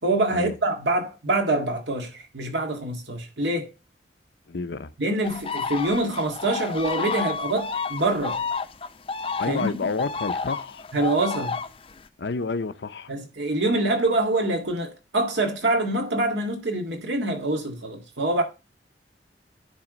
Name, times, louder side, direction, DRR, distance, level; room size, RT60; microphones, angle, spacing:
voice 1, 0.0-3.7 5.0-8.4 9.5-9.7 10.9-11.6 13.1-18.4, right 2 dB, 90° right, 1.9 m, -25 dB
voice 2, 4.5-4.9 9.4-10.9 12.2-13.1, left 4 dB, 80° left, 0.6 m, -29 dB
sound 1, 5.2-12.0, left 5 dB, 30° left, 0.5 m, -30 dB
10.5 x 3.5 x 5.1 m
head